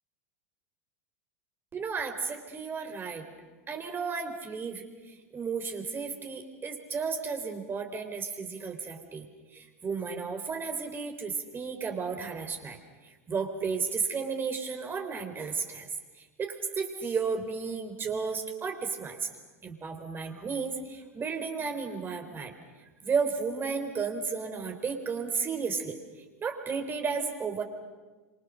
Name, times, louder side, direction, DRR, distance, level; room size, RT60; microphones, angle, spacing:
voice 1, 1.7-3.3 3.7-9.2 9.5-12.8 13.0-15.9 16.4-19.3 19.6-22.5 23.0-26.0 26.4-27.6, right 5 dB, 25° right, 5 dB, 4.3 m, -33 dB
28.5 x 27.0 x 6.5 m, 1.2 s
hypercardioid pair, 90°, 8 cm